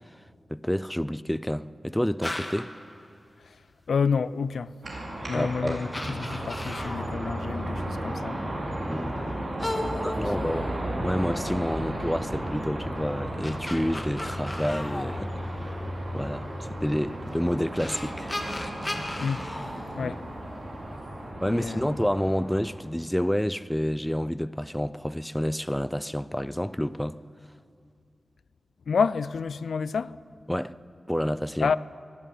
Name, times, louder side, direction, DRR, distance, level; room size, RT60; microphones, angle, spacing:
voice 1, 0.5-2.7 5.3-5.8 8.8-9.3 10.0-15.7 16.1-16.5 16.8-18.3 20.0-20.1 21.4-27.2 30.5-30.7 31.1-31.7, equal, 5° left, 0.4 m, -29 dB
sound 1, 2.2-2.8 4.8-4.9 5.6-5.7 5.9-7.2 9.6-11.2 13.1-15.9 17.3-17.4 17.8-20.6, left 1 dB, 20° left, 1.9 m, -36 dB
voice 2, 3.9-4.7 5.3-5.9 6.2-8.4 9.8-10.1 19.2-19.5 20.0-20.2 21.5-22.0 28.9-30.1 31.6-31.8, left 5 dB, 90° left, 0.4 m, -28 dB
sound 2, 4.8-22.8, right 1 dB, 55° right, 5.6 m, -34 dB
sound 3, 11.6-19.1, left 1 dB, 60° left, 6.9 m, -49 dB
24.0 x 12.5 x 9.3 m
wide cardioid pair, 90°, 0 cm